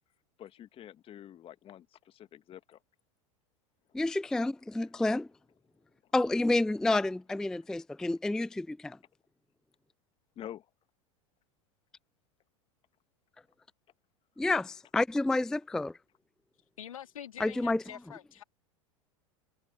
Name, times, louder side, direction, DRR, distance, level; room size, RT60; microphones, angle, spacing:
voice 1, 0.4-2.8 10.4-10.6, left 11 dB, 30° left, 1.6 m, -47 dB
voice 2, 3.9-5.3 6.1-9.0 14.4-15.9 17.4-17.8, left 2 dB, 5° left, 0.4 m, -29 dB
voice 3, 16.8-18.4, left 10 dB, 75° left, 3.3 m, -45 dB
figure-of-eight pair, 85°, 17 cm